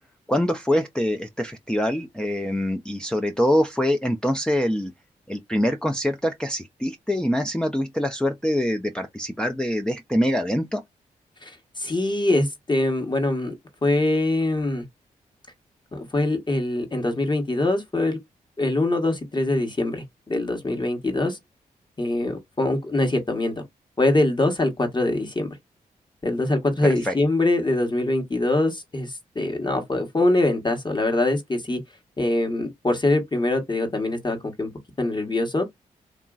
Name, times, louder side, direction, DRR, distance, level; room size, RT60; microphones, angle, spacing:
voice 1, 0.3-4.9 5.3-10.8 27.0-27.2, equal, 5° left, 0.5 m, -24 dB
voice 2, 11.4-13.5 13.8-14.8 15.9-18.2 18.6-21.4 22.0-23.5 24.0-25.6 26.2-31.8 32.2-34.7 35.0-35.6, left 2 dB, 25° left, 1.2 m, -23 dB
2.9 x 2.4 x 2.4 m
supercardioid pair, 40°, 17 cm